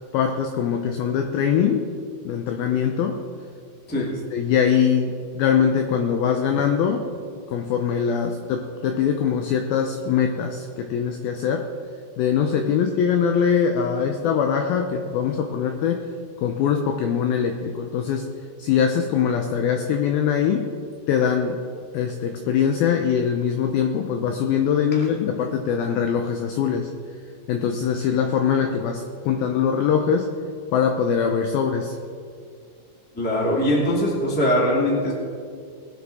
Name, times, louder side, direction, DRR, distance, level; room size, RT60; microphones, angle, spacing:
voice 1, 0.1-1.9 2.2-3.2 3.9-7.1 7.5-11.7 12.2-16.1 16.4-18.3 18.6-20.8 21.1-21.6 21.9-26.9 27.5-30.3 30.7-32.0, left 7 dB, 90° left, 4 dB, 2.1 m, -22 dB
voice 2, 33.1-35.1, equal, 5° left, -4 dB, 0.9 m, -21 dB
20.0 x 8.1 x 4.2 m, 2.3 s
omnidirectional pair, 5.2 m